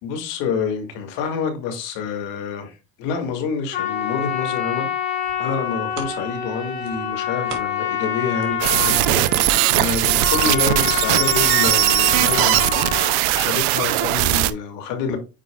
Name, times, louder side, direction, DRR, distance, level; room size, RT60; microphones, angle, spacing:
voice 1, 0.0-4.9 5.4-9.5 9.7-12.8 13.3-15.2, left 5 dB, 75° left, 2.1 m, -27 dB
Trumpet, 3.7-13.2, left 9 dB, 40° left, 3.5 m, -27 dB
sound 1, 5.1-8.1 8.4-12.2 12.7-12.8, right 6 dB, 65° right, 2.5 m, -40 dB
sound 2, 8.6-14.5, right 16 dB, 85° right, 0.6 m, -19 dB
8.8 x 4.9 x 2.3 m
cardioid pair, 130°, 32 cm